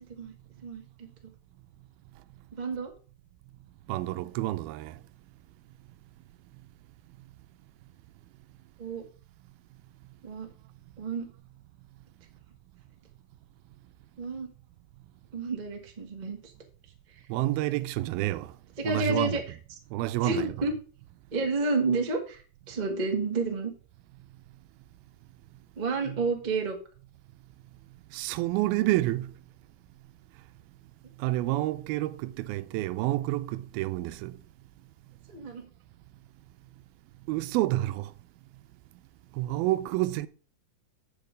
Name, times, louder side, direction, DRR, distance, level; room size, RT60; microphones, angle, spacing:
voice 1, 0.6-1.1 2.5-2.9 8.8-9.0 10.2-10.5 11.0-11.3 14.2-14.5 15.3-16.5 18.8-19.4 20.2-20.7 21.3-23.7 25.8-26.7 35.3-35.6, right 3 dB, 40° right, 0.6 m, -30 dB
voice 2, 3.9-4.9 17.3-18.5 18.8-19.4 19.9-20.7 26.1-26.2 28.1-29.3 31.2-34.4 37.3-38.1 39.4-40.3, right 16 dB, 85° right, 2.4 m, -29 dB
8.5 x 6.6 x 5.2 m
omnidirectional pair, 4.3 m